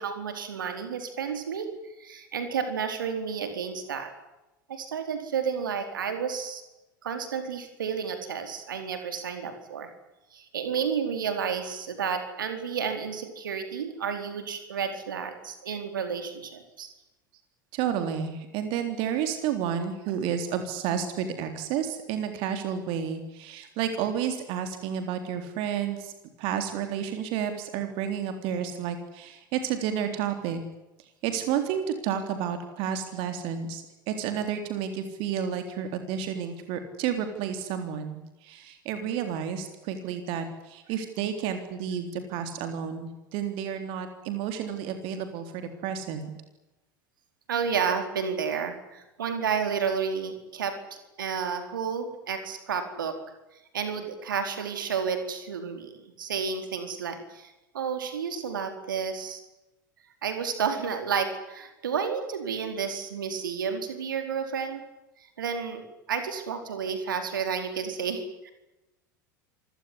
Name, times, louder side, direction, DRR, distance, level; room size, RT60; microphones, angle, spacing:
voice 1, 0.0-1.7 2.0-4.1 4.7-6.6 7.0-9.9 10.3-16.9 47.5-53.2 53.7-59.4 60.2-64.8 65.4-68.5, right 6 dB, 75° right, 7 dB, 4.4 m, -31 dB
voice 2, 17.7-26.1 26.4-30.6 31.2-46.3, right 8 dB, 55° right, 7 dB, 3.7 m, -31 dB
27.0 x 17.5 x 9.9 m, 1.0 s
figure-of-eight pair, 75°, 11 cm